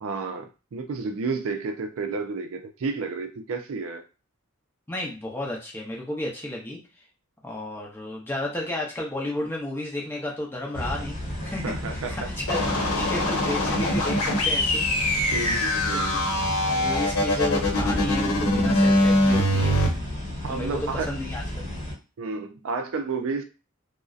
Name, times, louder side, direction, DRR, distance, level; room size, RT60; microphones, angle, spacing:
voice 1, 0.0-4.0 11.6-12.3 15.3-16.2 20.4-21.1 22.2-23.4, right 4 dB, 70° right, 0.4 m, -31 dB
voice 2, 4.9-6.8 7.4-11.2 11.4-11.6 11.9-14.8 15.9-16.2 16.7-19.8 20.5-21.7, left 1 dB, 10° left, 0.5 m, -32 dB
sound 1, 10.7-21.9, left 1 dB, 35° left, 1.1 m, -33 dB
sound 2, 12.5-19.9, left 1 dB, 90° left, 0.8 m, -23 dB
2.5 x 2.0 x 2.3 m
head